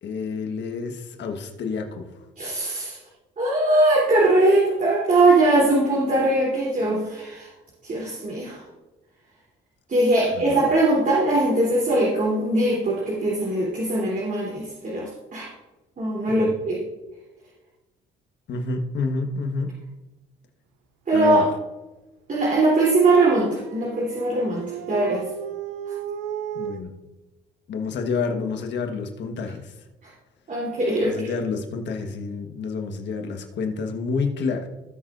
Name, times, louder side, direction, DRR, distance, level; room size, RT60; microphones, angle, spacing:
voice 1, 0.0-2.1 10.3-10.6 16.3-16.5 18.5-19.7 21.1-21.5 26.5-26.9 27.7-29.7 31.0-34.7, left 4 dB, 60° left, 4 dB, 1.5 m, -29 dB
voice 2, 2.4-3.0 3.4-7.5 7.8-8.6 9.9-15.5 16.0-16.8 21.1-21.5 22.3-25.2 30.0-30.1 30.5-31.3, right 2 dB, 40° right, -5 dB, 3.5 m, -21 dB
Dog, 23.3-26.8, right 9 dB, 85° right, 0.6 m, -34 dB
17.5 x 6.2 x 2.6 m, 1.1 s
supercardioid pair, 75°, 20 cm